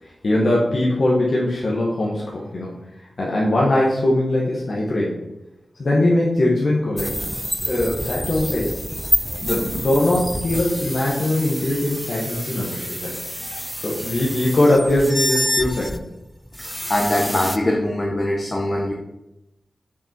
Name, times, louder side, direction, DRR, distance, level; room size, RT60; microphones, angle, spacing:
voice 1, 0.0-2.8 3.2-5.2 5.8-7.1 7.6-8.7 9.4-13.1 13.8-16.0, left 1 dB, 60° left, -5 dB, 1.5 m, -21 dB
sound 1, 7.0-17.6, equal, ahead, 0.4 m, -27 dB
voice 2, 16.9-18.9, left 1 dB, 30° left, -1 dB, 1.1 m, -22 dB
6.4 x 6.2 x 4.5 m, 0.93 s
wide cardioid pair, 105°, 0 cm